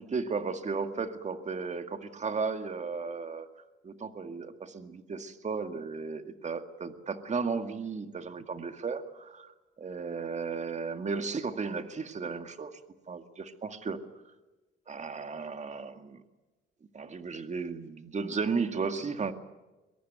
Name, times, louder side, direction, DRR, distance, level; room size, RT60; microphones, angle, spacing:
voice 1, 0.0-3.5 3.8-12.8 13.1-14.0 14.9-16.2 16.9-19.3, right 5 dB, 35° right, 8 dB, 2.1 m, -35 dB
22.0 x 22.0 x 9.3 m, 1.1 s
cardioid pair, 90°, 20 cm